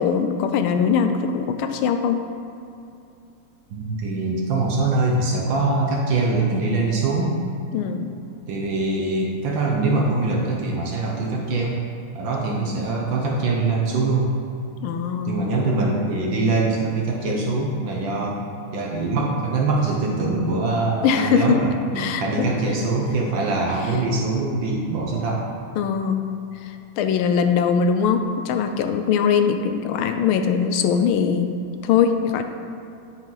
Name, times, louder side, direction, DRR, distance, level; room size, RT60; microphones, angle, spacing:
voice 1, 0.0-2.2 7.7-8.1 12.5-12.8 14.8-15.4 21.0-21.6 22.0-22.2 25.8-26.3 26.6-31.5 31.8-32.4, left 6 dB, 80° left, 7 dB, 1.4 m, -21 dB
voice 2, 3.7-7.4 8.5-11.8 12.1-14.3 15.2-18.4 18.7-25.4, right 3 dB, 65° right, -2 dB, 1.5 m, -23 dB
9.7 x 5.9 x 3.9 m, 2.7 s
omnidirectional pair, 2.3 m